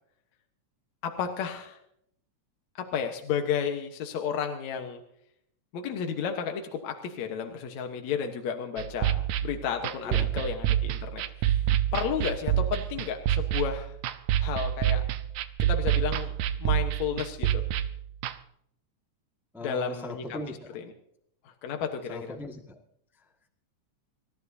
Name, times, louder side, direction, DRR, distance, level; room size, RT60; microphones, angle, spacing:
voice 1, 1.0-1.8 2.9-5.0 5.7-14.0 14.4-15.0 15.6-17.6 19.6-20.9 21.4-22.4, left 7 dB, 70° left, 4 dB, 2.4 m, -32 dB
sound 1, 8.8-18.3, right 11 dB, 85° right, 2.2 m, -28 dB
voice 2, 10.0-10.5 19.5-20.5 22.1-22.8, left 1 dB, ahead, 1 dB, 0.8 m, -38 dB
27.5 x 14.5 x 2.7 m, 0.70 s
omnidirectional pair, 3.4 m